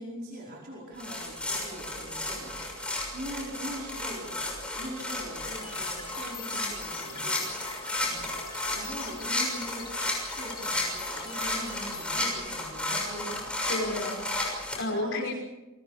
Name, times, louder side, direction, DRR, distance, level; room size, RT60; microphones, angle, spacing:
voice 1, 0.0-4.4 4.8-7.6 8.0-8.4 8.7-9.9 10.3-13.5 14.7-15.3, equal, 45° right, -3 dB, 4.9 m, -41 dB
sound 1, 1.0-14.8, left 2 dB, 5° left, 6.4 m, -33 dB
sound 2, 5.4-12.3, left 5 dB, 20° left, 2.2 m, -44 dB
voice 2, 13.7-15.3, left 1 dB, 60° left, 2 dB, 5.5 m, -32 dB
28.5 x 23.5 x 5.1 m, 1.1 s
head